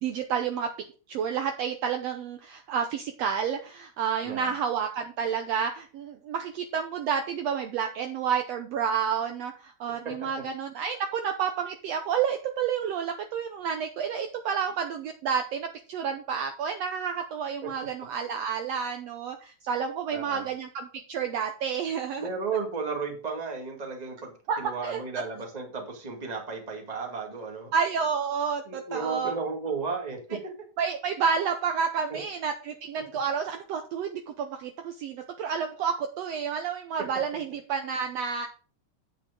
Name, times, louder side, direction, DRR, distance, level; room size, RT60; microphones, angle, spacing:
voice 1, 0.0-22.3 24.5-25.0 27.7-29.4 30.8-38.5, right 7 dB, 70° right, 5 dB, 1.7 m, -30 dB
voice 2, 4.2-4.6 10.0-10.4 17.6-17.7 20.1-20.5 22.2-27.7 28.7-30.4 32.1-32.2 33.0-33.1, right 4 dB, 15° right, 1 dB, 1.8 m, -34 dB
8.3 x 8.3 x 3.7 m, 0.37 s
omnidirectional pair, 3.4 m